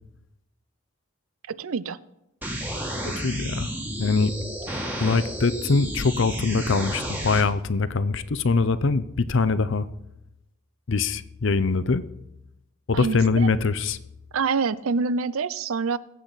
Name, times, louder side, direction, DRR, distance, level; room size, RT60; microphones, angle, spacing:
voice 1, 1.5-2.0 12.9-13.5 14.3-16.0, right 5 dB, 75° right, 17 dB, 0.5 m, -26 dB
sound 1, 2.4-7.4, equal, 10° right, 1.7 m, -32 dB
voice 2, 3.0-4.3 5.0-9.9 10.9-12.0 12.9-14.0, left 4 dB, 60° left, 14 dB, 0.6 m, -23 dB
21.0 x 8.5 x 4.1 m, 0.88 s
head